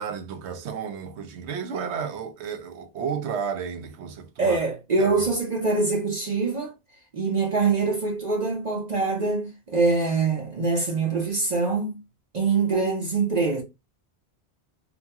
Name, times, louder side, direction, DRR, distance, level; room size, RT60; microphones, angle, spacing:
voice 1, 0.0-4.6 5.0-5.3, right 7 dB, 75° right, 0.9 m, -32 dB
voice 2, 4.4-6.7 7.1-12.0 12.3-13.6, right 4 dB, 45° right, 0.7 m, -24 dB
2.9 x 2.7 x 2.3 m
omnidirectional pair, 1.2 m